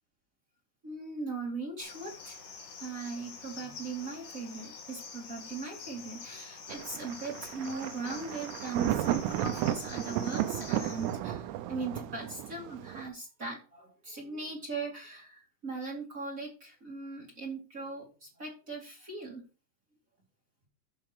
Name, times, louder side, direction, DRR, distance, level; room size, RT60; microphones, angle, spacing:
voice 1, 0.8-2.3 2.8-11.4 11.7-15.3 15.6-18.1 18.4-19.4, right 3 dB, 30° right, -2 dB, 1.5 m, -39 dB
Cricket, 1.8-11.2, left 5 dB, 50° left, 2.9 m, -47 dB
Thunder, 6.7-13.1, right 12 dB, 85° right, 3.4 m, -34 dB
13.5 x 4.7 x 5.0 m, 0.34 s
omnidirectional pair, 5.7 m